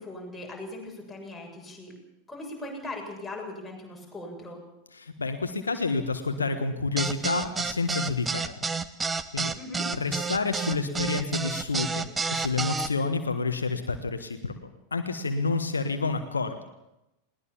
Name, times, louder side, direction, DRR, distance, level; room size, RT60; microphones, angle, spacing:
voice 1, 0.0-1.9 2.3-4.6 9.6-9.9, left 2 dB, 5° left, -2 dB, 7.5 m, -39 dB
voice 2, 4.9-8.5 9.3-9.5 9.9-14.6 14.9-16.6, left 4 dB, 75° left, 8 dB, 1.4 m, -29 dB
sound 1, 7.0-12.9, right 4 dB, 15° right, 1.0 m, -29 dB
21.0 x 18.5 x 7.3 m, 0.91 s
figure-of-eight pair, 90°, 0 cm